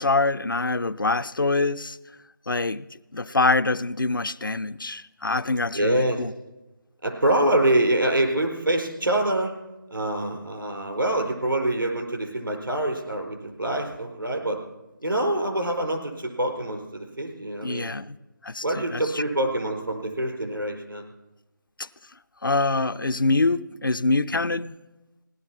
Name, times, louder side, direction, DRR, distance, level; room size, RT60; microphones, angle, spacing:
voice 1, 0.0-2.0 2.5-2.9 3.1-6.3 17.6-18.2 18.4-19.2 21.8-21.9 22.4-24.8, left 3 dB, 75° left, 0.6 m, -25 dB
voice 2, 5.7-6.2 7.0-9.5 9.9-14.6 15.0-17.9 18.6-21.1, right 1 dB, 80° right, 4.9 m, -25 dB
17.5 x 12.0 x 5.9 m
figure-of-eight pair, 155°, 11 cm